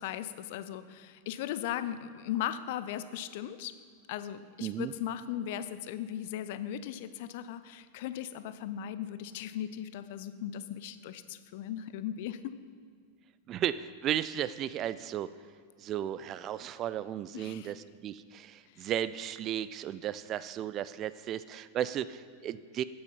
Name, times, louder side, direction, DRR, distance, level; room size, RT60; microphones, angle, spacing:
voice 1, 0.0-3.7 4.1-12.6 17.3-17.7 18.7-18.8, left 11 dB, 50° left, 13 dB, 0.5 m, -38 dB
voice 2, 4.6-4.9 13.5-15.3 15.8-22.8, right 11 dB, 35° right, 15 dB, 0.3 m, -35 dB
8.7 x 7.9 x 5.6 m, 2.1 s
figure-of-eight pair, 90°, 0 cm